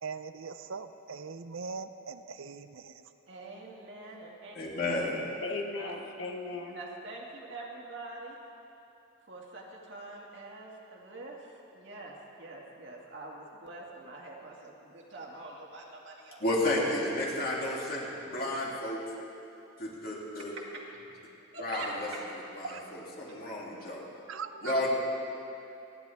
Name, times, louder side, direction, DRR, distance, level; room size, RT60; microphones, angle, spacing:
voice 1, 0.0-3.0 22.6-22.8 24.3-24.9, right 5 dB, 75° right, 10 dB, 0.5 m, -40 dB
voice 2, 3.3-4.6 5.8-6.0 6.7-8.4 9.3-16.8 17.3-17.4 20.7-20.8 21.5-21.9, right 2 dB, 55° right, -2 dB, 2.1 m, -45 dB
voice 3, 4.5-5.3 16.4-19.0 19.8-20.5 21.6-22.1 22.5-24.0 24.6-24.9, left 1 dB, 45° left, -4 dB, 2.8 m, -32 dB
voice 4, 5.4-6.8, left 3 dB, 65° left, 2 dB, 1.3 m, -37 dB
28.0 x 11.0 x 3.5 m, 2.8 s
head